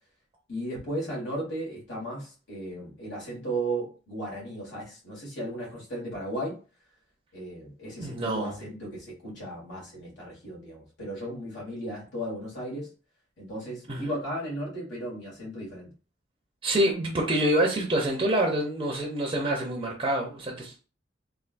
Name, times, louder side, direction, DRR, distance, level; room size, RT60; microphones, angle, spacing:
voice 1, 0.5-6.5 7.3-12.9 13.4-15.9, right 1 dB, 80° left, -4 dB, 1.7 m, -35 dB
voice 2, 8.0-8.5 13.9-14.1 16.6-20.9, right 1 dB, 30° right, -1 dB, 0.5 m, -26 dB
3.4 x 2.4 x 2.5 m, 0.36 s
head